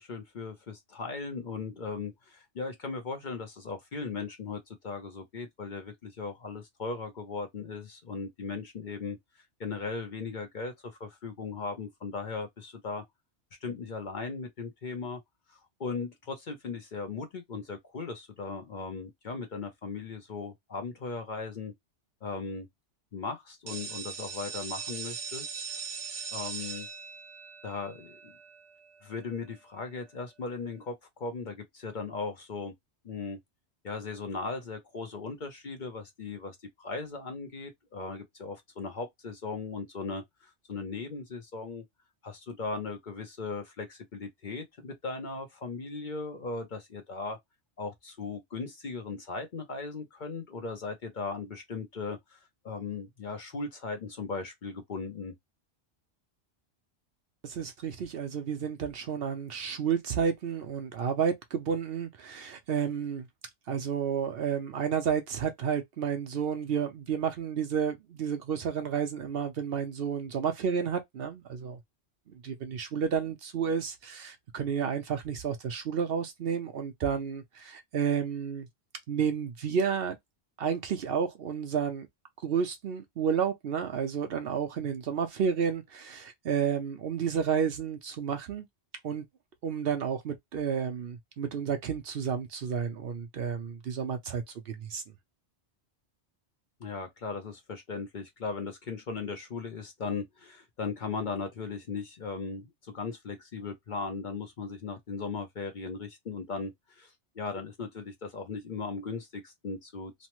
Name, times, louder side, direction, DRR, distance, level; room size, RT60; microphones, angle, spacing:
voice 1, 0.0-9.2 9.6-13.0 13.6-15.2 15.5-21.7 22.2-22.7 23.1-25.5 26.3-26.9 27.6-28.4 29.0-32.7 33.0-33.4 33.8-41.8 42.2-47.4 47.8-52.4 52.6-55.3 96.8-110.1, left 4 dB, 50° left, 0.7 m, -38 dB
sound 1, 23.7-29.3, right 6 dB, 85° right, 1.1 m, -40 dB
voice 2, 57.4-63.3 63.7-71.8 72.3-78.7 79.1-80.2 80.6-82.1 82.4-88.7 89.0-89.2 89.6-95.0, right 7 dB, 60° right, 0.8 m, -31 dB
3.1 x 2.0 x 2.9 m
omnidirectional pair, 1.2 m